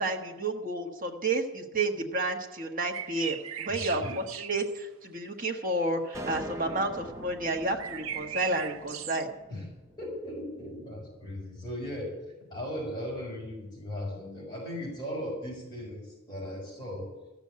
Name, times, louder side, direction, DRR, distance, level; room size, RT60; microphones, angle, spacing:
voice 1, 0.0-9.3, right 2 dB, 40° right, 2 dB, 1.5 m, -31 dB
sound 1, 2.9-4.8 7.7-9.3, right 10 dB, 85° right, 0.5 m, -38 dB
voice 2, 3.7-4.1 9.5-9.7 10.0-12.1 12.5-17.1, left 1 dB, 20° left, -4 dB, 5.1 m, -37 dB
sound 2, 6.1-10.6, right 1 dB, 15° right, 0.7 m, -44 dB
14.5 x 7.2 x 9.6 m, 1.1 s
head